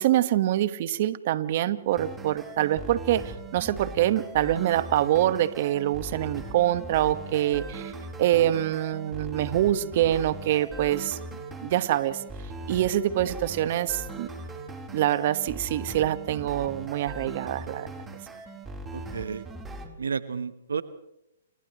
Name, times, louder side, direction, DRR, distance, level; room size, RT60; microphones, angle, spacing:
voice 1, 0.0-3.2 3.5-7.9 8.2-11.2 11.6-12.2 12.7-14.3 14.9-17.9, right 13 dB, 50° right, 13 dB, 1.5 m, -25 dB
sound 1, 1.9-19.9, right 2 dB, 10° right, 4.0 m, -40 dB
voice 2, 18.9-19.5 20.0-20.8, right 5 dB, 85° right, 13 dB, 1.1 m, -31 dB
30.0 x 29.5 x 3.2 m, 0.84 s
hypercardioid pair, 130°, 0 cm